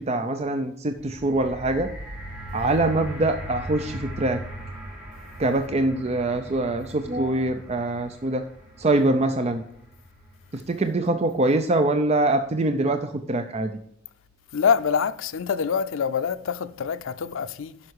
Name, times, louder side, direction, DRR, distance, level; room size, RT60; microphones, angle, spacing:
voice 1, 0.0-1.9 2.5-4.4 5.4-8.4 8.8-9.6 10.5-13.7, right 2 dB, 35° right, 0.6 m, -24 dB
sound 1, 0.9-11.1 11.9-12.0, equal, 5° right, 3.6 m, -39 dB
voice 2, 14.5-17.8, left 6 dB, 90° left, 0.5 m, -25 dB
11.0 x 5.8 x 4.8 m
head